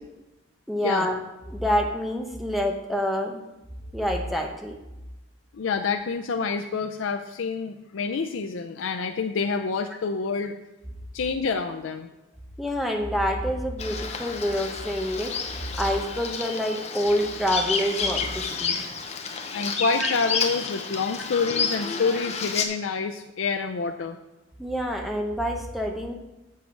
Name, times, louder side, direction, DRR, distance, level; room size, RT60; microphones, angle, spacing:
voice 1, 0.7-1.2 1.5-3.4 3.9-4.8 12.6-15.3 15.8-18.8 20.0-20.1 22.0-22.3 24.6-26.1, equal, ahead, 2 dB, 0.9 m, -27 dB
voice 2, 5.5-10.6 11.1-12.1 19.5-24.2, left 5 dB, 85° left, 5 dB, 0.5 m, -27 dB
Bird vocalization bird call bird song, 13.8-22.6, left 5 dB, 35° left, 0.8 m, -30 dB
7.6 x 7.5 x 4.6 m, 0.99 s
head